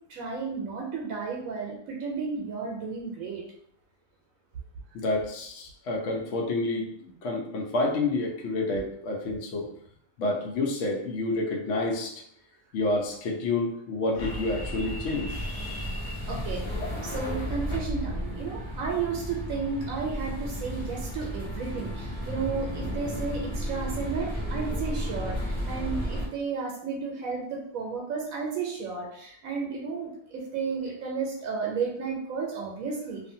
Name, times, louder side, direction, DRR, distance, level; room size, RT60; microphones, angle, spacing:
voice 1, 0.1-3.4 16.2-16.6 17.0-33.2, right 5 dB, 80° right, 0 dB, 1.0 m, -33 dB
voice 2, 4.9-6.9 7.2-9.7 10.2-12.1 12.7-15.9 16.6-16.9, left 2 dB, 70° left, -1 dB, 0.9 m, -29 dB
sound 1, 14.2-26.3, equal, 45° left, 0.3 m, -33 dB
2.5 x 2.4 x 2.6 m, 0.69 s
omnidirectional pair, 1.4 m